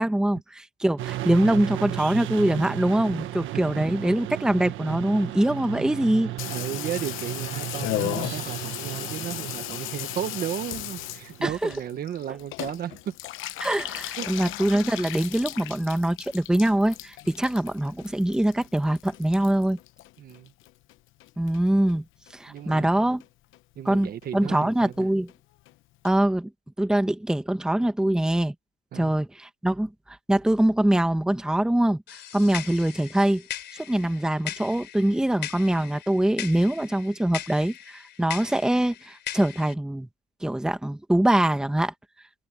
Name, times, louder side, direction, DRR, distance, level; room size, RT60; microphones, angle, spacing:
voice 1, 0.0-6.3 11.4-11.7 13.6-19.8 21.4-22.0 22.3-23.2 23.8-25.3 26.0-26.5 26.8-28.5 28.9-32.0 32.3-33.4 33.7-40.1 40.4-41.9, right 1 dB, 5° right, 1.1 m, -23 dB
sound 1, 1.0-11.4, right 15 dB, 80° right, 1.5 m, -35 dB
voice 2, 2.4-2.8 3.1-3.3 3.5-3.8 5.7-5.9 6.5-13.1 14.2-14.3 20.2-20.5 22.5-22.9 23.8-25.0 28.9-29.1, right 10 dB, 50° right, 1.4 m, -34 dB
Water tap faucet / Bathtub (filling or washing), 6.4-20.9 21.2-21.9 22.3-22.4 22.6-22.7 22.9-23.3 23.5-23.6 23.9-24.0 24.2-24.3 24.6-24.7 24.9-25.0 25.3-25.4 25.7-25.8 26.1-26.2, left 16 dB, 85° left, 0.9 m, -36 dB
sound 2, 32.1-39.7, left 12 dB, 60° left, 3.8 m, -39 dB
cardioid pair, 160°, 20 cm